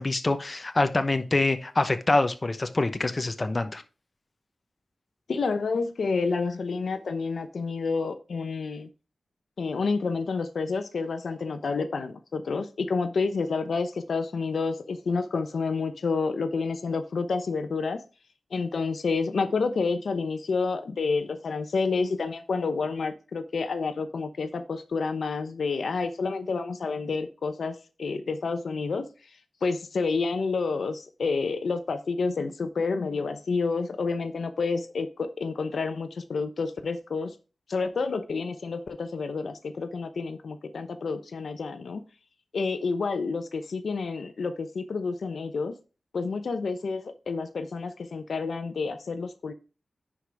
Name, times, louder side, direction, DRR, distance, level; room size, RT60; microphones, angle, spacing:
voice 1, 0.0-3.8, left 2 dB, 30° left, 0.9 m, -25 dB
voice 2, 5.3-8.9 9.6-18.0 18.5-29.1 29.6-37.3 37.7-42.0 42.5-45.8 46.1-49.5, left 4 dB, 75° left, 0.8 m, -29 dB
10.0 x 5.0 x 3.5 m
wide cardioid pair, 85°, 0 cm